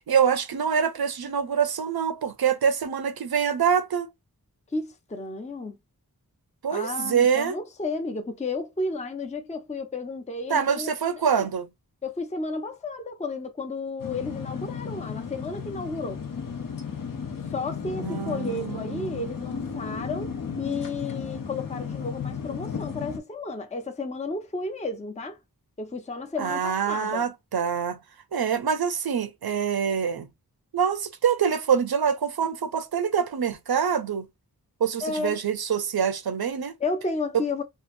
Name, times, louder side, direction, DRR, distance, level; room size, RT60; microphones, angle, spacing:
voice 1, 0.1-4.1 6.6-7.5 10.5-11.7 18.0-19.2 26.4-28.0 28.3-30.3 30.7-34.3 34.8-36.7 37.3-37.4, right 7 dB, 80° right, 0.6 m, -25 dB
voice 2, 4.7-5.8 6.7-11.5 12.0-16.2 17.5-25.4 25.8-27.3 35.0-35.4 36.8-37.6, left 3 dB, 20° left, 0.5 m, -32 dB
sound 1, 14.0-23.2, left 6 dB, 60° left, 0.7 m, -34 dB
2.8 x 2.5 x 2.5 m
wide cardioid pair, 55°, 37 cm